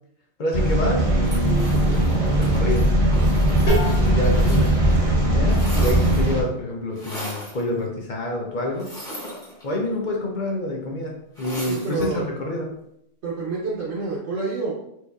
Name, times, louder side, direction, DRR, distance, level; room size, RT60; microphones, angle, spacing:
voice 1, 0.4-2.9 3.9-8.9 9.6-12.8, left 1 dB, 50° left, 0 dB, 0.7 m, -28 dB
sound 1, 0.5-6.4, right 1 dB, 35° right, 0.7 m, -19 dB
sound 2, 1.2-5.0 5.2-6.4 6.9-7.6 8.7-9.9 11.3-12.1, equal, 5° left, 1.1 m, -37 dB
sound 3, 3.7-9.2, left 1 dB, 70° left, 1.3 m, -33 dB
voice 2, 11.7-12.2 13.2-14.7, right 3 dB, 70° right, -6 dB, 1.1 m, -28 dB
4.5 x 2.6 x 2.3 m, 0.77 s
omnidirectional pair, 1.2 m